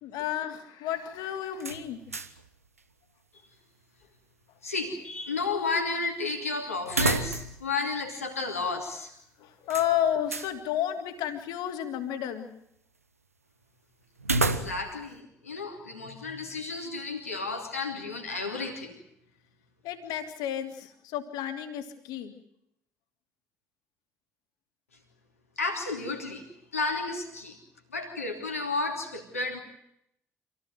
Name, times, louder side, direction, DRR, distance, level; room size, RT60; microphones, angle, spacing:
voice 1, 0.0-2.0 9.4-12.5 19.8-22.3, left 10 dB, 65° left, 7 dB, 3.0 m, -31 dB
sound 1, 1.6-2.5 2.8-2.9 6.9-7.7 8.0-8.1 9.7-10.5 14.2-15.0, right 3 dB, 85° right, 1.0 m, -30 dB
voice 2, 4.6-9.1 14.4-19.0 25.6-26.5 26.7-27.6 27.9-29.6, left 3 dB, 85° left, 3 dB, 3.0 m, -32 dB
27.0 x 17.0 x 9.3 m, 0.74 s
figure-of-eight pair, 45°, 8 cm